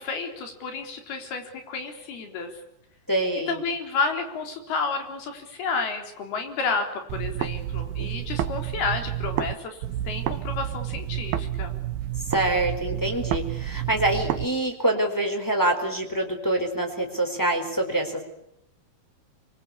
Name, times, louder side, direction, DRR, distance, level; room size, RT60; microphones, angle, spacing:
voice 1, 0.0-2.6 3.5-11.8, left 4 dB, 90° left, 5 dB, 5.8 m, -31 dB
voice 2, 3.1-3.6 12.3-18.2, right 1 dB, 5° left, 2 dB, 4.1 m, -25 dB
sound 1, 7.1-9.5 9.8-14.5, right 12 dB, 85° right, 3.1 m, -30 dB
26.5 x 23.5 x 8.6 m, 0.81 s
omnidirectional pair, 4.3 m